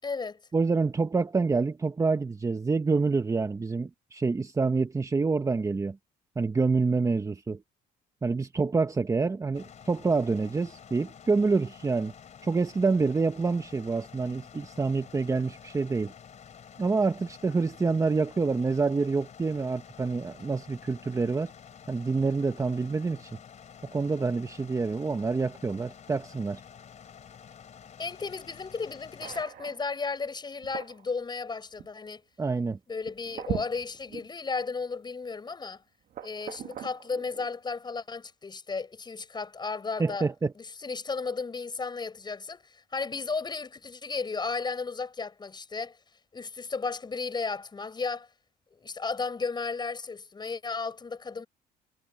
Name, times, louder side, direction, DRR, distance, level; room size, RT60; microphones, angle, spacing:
voice 1, 0.0-0.4 28.0-32.2 32.9-35.8 36.2-40.3 40.6-46.0 46.3-48.3 48.7-51.5, left 4 dB, 25° left, 6.9 m, -34 dB
voice 2, 0.5-6.0 6.4-7.6 8.2-12.1 12.4-16.1 16.8-21.5 21.9-23.3 23.9-26.6 32.4-32.8 40.0-40.5, right 4 dB, 20° right, 1.0 m, -27 dB
sound 1, 9.5-29.4, left 7 dB, 45° left, 3.4 m, -50 dB
sound 2, 29.2-30.1 30.6-31.1 31.8-31.9 33.0-34.3 34.9-35.0 36.1-37.5, right 11 dB, 60° right, 1.4 m, -40 dB
cardioid pair, 110°, 17 cm